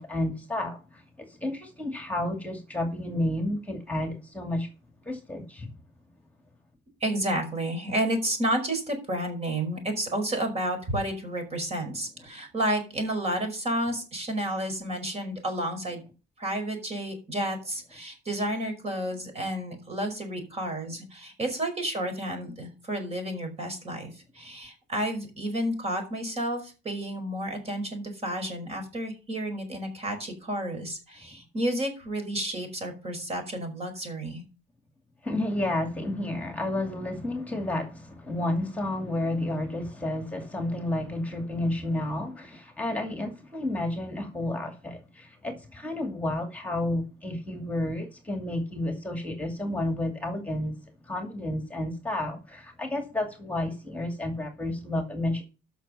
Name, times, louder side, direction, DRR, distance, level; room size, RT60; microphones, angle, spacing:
voice 1, 0.0-4.7 5.1-5.7 35.2-50.8 51.0-55.4, left 1 dB, 10° left, 2.3 m, -31 dB
voice 2, 7.0-16.0 16.4-34.4, right 1 dB, 40° right, 5.2 m, -31 dB
13.0 x 6.3 x 5.6 m
cardioid pair, 110°, 17 cm